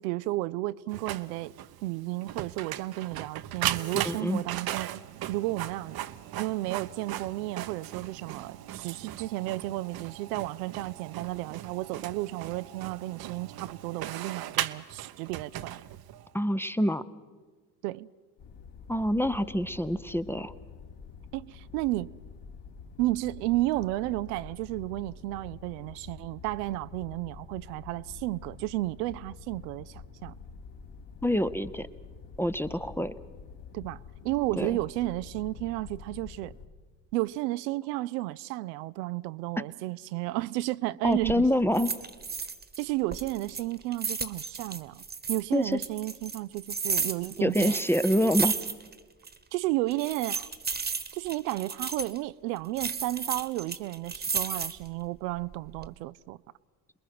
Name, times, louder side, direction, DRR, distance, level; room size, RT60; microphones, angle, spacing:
voice 1, 0.0-1.5 1.8-5.0 5.3-6.0 6.3-15.8 17.8-18.1 21.3-22.1 23.0-30.4 33.7-36.5 37.1-41.5 42.8-47.8 49.5-50.5 51.1-56.4, right 18 dB, 70° right, 0.6 m, -32 dB
Printer, 0.9-16.3, right 12 dB, 45° right, 0.9 m, -38 dB
voice 2, 4.0-4.4 16.3-17.0 18.9-20.5 31.2-31.9 32.4-33.1 34.6-34.7 41.0-41.9 45.5-45.8 47.4-48.6, equal, 5° left, 0.7 m, -26 dB
sound 1, 18.4-36.7, left 5 dB, 55° left, 2.6 m, -47 dB
sound 2, 41.1-41.4 41.7-42.8 43.1-45.4 45.8-49.0 49.3-49.4 49.9-52.2 52.8-54.9 55.4-55.9, right 5 dB, 20° right, 1.4 m, -33 dB
27.5 x 21.0 x 6.0 m
hypercardioid pair, 65°, 50 cm